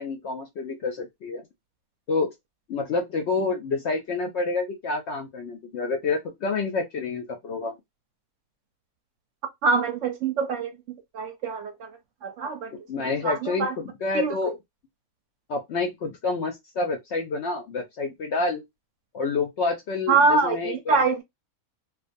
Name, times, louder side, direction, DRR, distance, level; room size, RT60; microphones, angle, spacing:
voice 1, 0.0-1.4 2.1-2.3 2.7-7.7 12.7-14.6 15.5-18.6 19.1-21.0, left 3 dB, 65° left, 0.7 m, -28 dB
voice 2, 9.6-11.9 12.2-12.7 13.2-13.7 14.1-14.3 20.1-21.2, right 4 dB, 65° right, 0.8 m, -24 dB
2.4 x 2.2 x 2.5 m
omnidirectional pair, 1.5 m